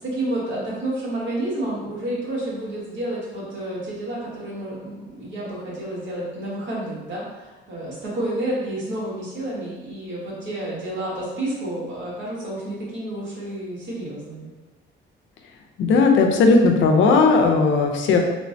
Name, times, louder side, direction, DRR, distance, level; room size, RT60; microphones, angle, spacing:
voice 1, 0.0-14.5, right 1 dB, 70° right, -6 dB, 1.2 m, -30 dB
voice 2, 15.8-18.2, left 4 dB, 75° left, 3 dB, 0.5 m, -16 dB
3.2 x 2.1 x 2.6 m, 1.2 s
cardioid pair, 90°, 20 cm